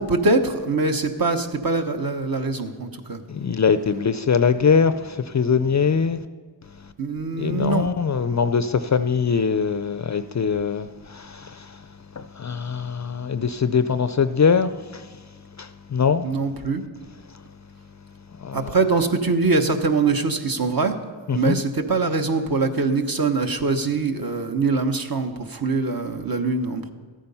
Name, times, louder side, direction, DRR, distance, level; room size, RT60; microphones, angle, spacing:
voice 1, 0.0-3.2 7.0-7.9 16.2-16.8 18.5-20.9 21.3-26.9, right 3 dB, 45° right, 1.1 m, -23 dB
voice 2, 3.3-6.2 7.4-11.7 12.2-15.0 15.6-16.2 18.4-18.7 21.3-21.6, left 6 dB, 40° left, 0.4 m, -22 dB
13.5 x 8.8 x 5.5 m
cardioid pair, 60°, 48 cm